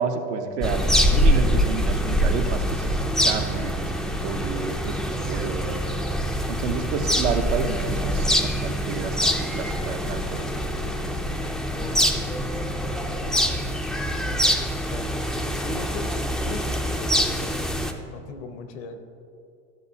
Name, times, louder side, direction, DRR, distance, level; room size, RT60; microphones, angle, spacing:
voice 1, 0.0-5.8 6.5-10.7, right 5 dB, 85° right, 5 dB, 0.9 m, -30 dB
sound 1, 0.6-17.9, equal, ahead, 0.3 m, -24 dB
voice 2, 11.7-13.8 14.1-15.2 15.5-19.0, left 3 dB, 75° left, 7 dB, 1.0 m, -40 dB
12.5 x 6.9 x 2.8 m, 2.5 s
supercardioid pair, 115°, 34 cm